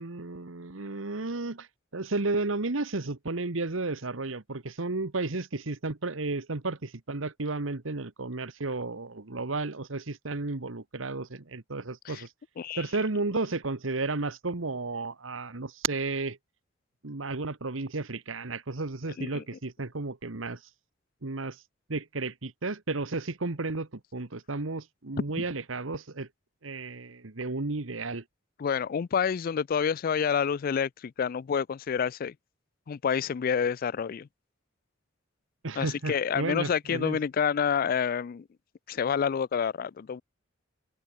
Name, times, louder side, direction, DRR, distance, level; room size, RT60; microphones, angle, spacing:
voice 1, 0.0-1.7 1.9-12.3 12.8-16.4 17.0-20.6 21.2-21.6 21.9-26.3 26.6-28.2 35.6-37.2, right 3 dB, 90° right, 1.4 m, -33 dB
voice 2, 28.6-32.3 32.9-34.3 35.8-38.4 38.9-40.2, left 7 dB, 45° left, 0.3 m, -28 dB
head